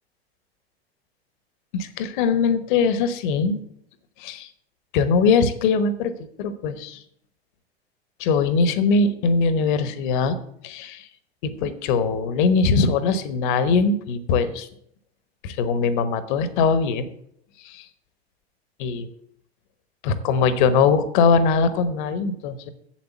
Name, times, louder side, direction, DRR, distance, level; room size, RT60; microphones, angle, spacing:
voice 1, 1.7-3.6 4.2-4.5 4.9-7.0 8.2-10.4 10.6-11.1 11.4-14.7 15.4-17.1 17.6-17.9 18.8-19.1 20.0-22.7, left 5 dB, 50° left, 13 dB, 1.1 m, -21 dB
7.6 x 7.5 x 6.8 m, 0.70 s
figure-of-eight pair, 85°, 33 cm